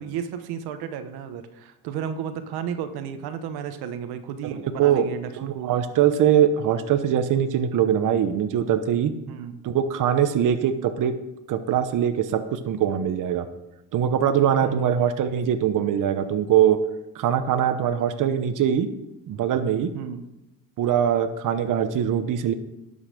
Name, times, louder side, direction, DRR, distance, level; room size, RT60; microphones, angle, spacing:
voice 1, 0.0-5.8 9.3-9.6 14.6-15.1 19.9-20.2, right 8 dB, 85° right, 9 dB, 1.0 m, -33 dB
voice 2, 4.8-5.1 5.4-9.1 9.6-11.1 11.5-13.5 13.9-16.8 17.1-18.9 19.3-19.9 20.8-22.5, right 9 dB, 55° right, 9 dB, 0.9 m, -22 dB
11.5 x 5.6 x 6.7 m, 0.96 s
cardioid pair, 110°, 37 cm